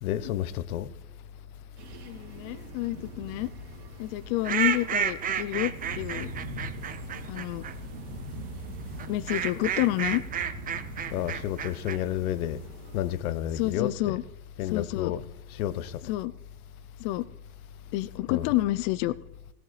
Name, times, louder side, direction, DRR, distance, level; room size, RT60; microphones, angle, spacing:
voice 1, 0.0-0.9 11.1-12.6 12.9-14.2 14.6-15.2 15.6-15.9 18.3-18.5, left 12 dB, 70° left, 1.0 m, -30 dB
sound 1, 1.8-13.1, right 1 dB, 85° right, 2.8 m, -42 dB
voice 2, 2.1-3.5 4.0-6.3 7.3-7.6 9.1-10.2 13.5-14.2 14.6-15.1 16.0-16.3 17.0-17.3 17.9-19.1, left 17 dB, 40° left, 0.4 m, -29 dB
sound 2, 4.4-7.7 9.0-12.0, right 8 dB, 20° right, 0.6 m, -31 dB
17.5 x 17.5 x 3.3 m
hypercardioid pair, 115°, 45 cm